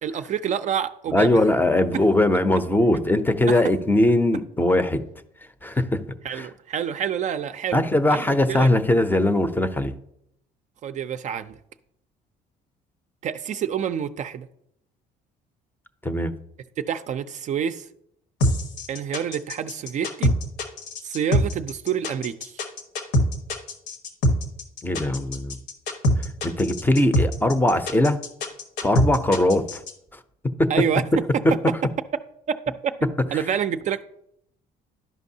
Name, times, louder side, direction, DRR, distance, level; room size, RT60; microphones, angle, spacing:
voice 1, 0.0-1.4 1.9-2.0 3.5-3.6 6.2-8.7 10.8-11.6 13.2-14.5 16.8-17.9 18.9-20.3 21.0-22.6 30.7-31.0 31.3-31.4 32.8-34.0, right 8 dB, 45° right, 0.4 m, -28 dB
voice 2, 1.1-5.0 5.6-6.0 6.3-6.5 7.7-9.9 16.0-16.3 24.8-25.6 26.4-28.2 28.8-29.8 30.6-30.7, left 1 dB, 10° left, 0.5 m, -20 dB
sound 1, 18.4-29.9, left 1 dB, 80° left, 1.3 m, -23 dB
12.0 x 5.2 x 2.7 m
cardioid pair, 110°, 17 cm